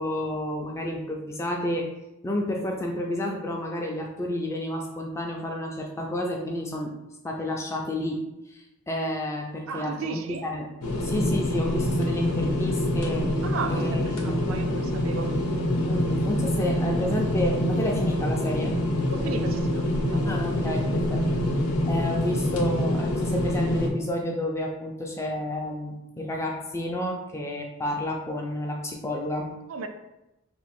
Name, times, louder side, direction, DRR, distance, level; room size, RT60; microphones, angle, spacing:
voice 1, 0.0-1.9 2.2-6.9 7.2-10.7 11.0-13.4 13.7-14.5 15.9-18.8 20.3-21.3 21.9-29.6, left 1 dB, 10° left, 1 dB, 0.3 m, -30 dB
voice 2, 9.7-10.4 13.4-15.3 19.1-20.3 29.7-29.9, right 4 dB, 70° right, 6 dB, 0.4 m, -34 dB
sound 1, 10.8-23.9, left 1 dB, 85° left, 0.6 m, -26 dB
3.0 x 2.4 x 4.2 m, 0.93 s
head